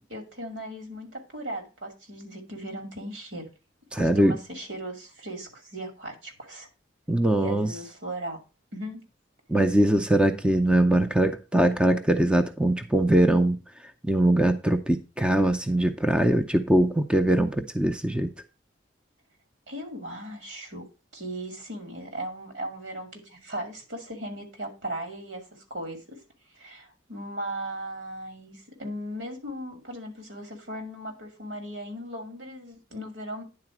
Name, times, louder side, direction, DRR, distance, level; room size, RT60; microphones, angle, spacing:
voice 1, 0.1-3.5 3.9-6.7 7.3-8.4 8.7-9.0 19.7-20.9 21.1-26.2 26.5-33.4, right 1 dB, 75° right, 2.4 m, -37 dB
voice 2, 3.9-4.4 7.1-7.7 9.5-13.6 14.0-18.3, right 1 dB, 5° right, 0.5 m, -22 dB
9.8 x 4.1 x 5.9 m
head